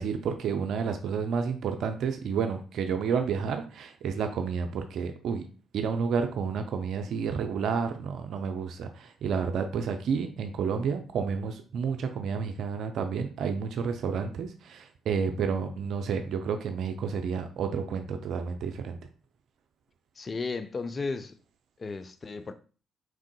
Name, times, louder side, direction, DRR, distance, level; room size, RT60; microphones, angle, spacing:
voice 1, 0.0-5.4 5.7-19.0, right 6 dB, 65° right, 0.4 m, -30 dB
voice 2, 20.2-21.4 21.8-22.5, left 4 dB, 40° left, 0.5 m, -34 dB
4.6 x 3.6 x 2.2 m
hypercardioid pair, 50°, 0 cm